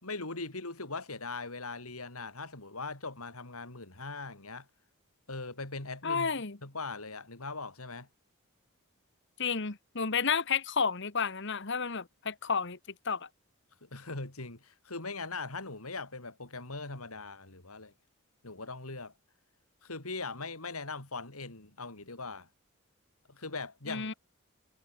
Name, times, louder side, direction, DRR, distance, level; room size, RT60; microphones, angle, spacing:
voice 1, 0.0-4.7 5.3-6.4 6.6-8.1 13.8-17.9 18.4-19.1 19.8-22.5 23.3-24.1, left 3 dB, 85° left, 4.1 m, -40 dB
voice 2, 6.0-6.6 9.4-12.8 13.0-13.3 23.9-24.1, left 5 dB, 55° left, 1.6 m, -31 dB
head